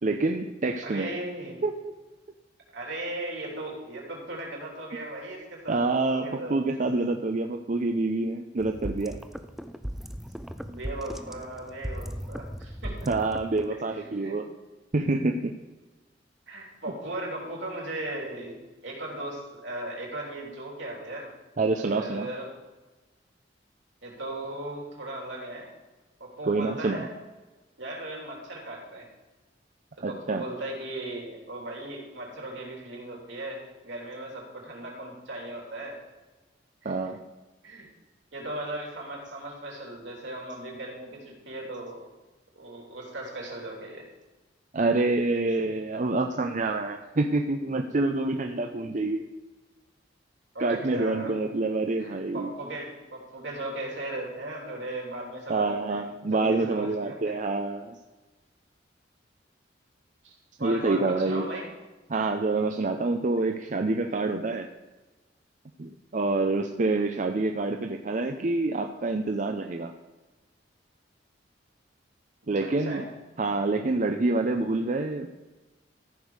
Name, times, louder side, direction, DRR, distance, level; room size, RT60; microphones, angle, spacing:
voice 1, 0.0-1.1 1.6-1.7 5.7-9.2 13.1-14.5 14.9-15.5 21.6-22.3 26.5-27.1 30.0-30.4 36.8-37.2 44.7-49.3 50.6-52.5 55.5-58.0 60.6-61.5 62.1-64.7 65.8-69.9 72.5-73.0 73.4-75.3, right 3 dB, 45° right, 5 dB, 0.6 m, -27 dB
voice 2, 0.8-1.6 2.7-6.6 10.7-13.1 13.9-14.4 16.5-21.3 21.8-22.6 24.0-25.7 26.2-27.2 27.8-29.1 30.0-36.0 36.8-37.1 37.6-37.9 38.3-42.1 42.6-44.1 50.5-51.3 52.0-57.4 60.2-60.3 60.6-61.7 72.6-73.1, right 1 dB, 75° right, -2 dB, 3.7 m, -37 dB
sound 1, 8.6-13.7, equal, ahead, 0.5 m, -37 dB
14.0 x 5.3 x 6.4 m, 1.2 s
head